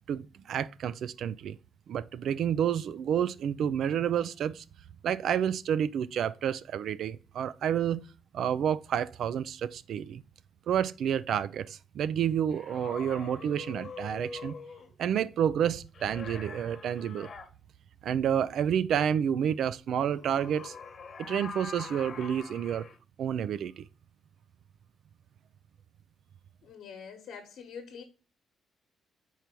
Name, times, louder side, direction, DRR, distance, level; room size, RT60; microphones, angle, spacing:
voice 1, 0.1-1.6 1.9-4.6 5.0-8.0 8.3-10.2 10.7-14.5 15.0-17.3 18.0-20.7 21.2-22.9 23.2-23.8, right 9 dB, 70° right, 0.3 m, -29 dB
sound 1, 12.5-14.9 15.9-17.5 20.0-23.0, left 5 dB, 50° left, 1.1 m, -44 dB
voice 2, 26.6-28.0, left 6 dB, 75° left, 1.2 m, -45 dB
4.7 x 4.5 x 5.2 m
cardioid pair, 90°, 0 cm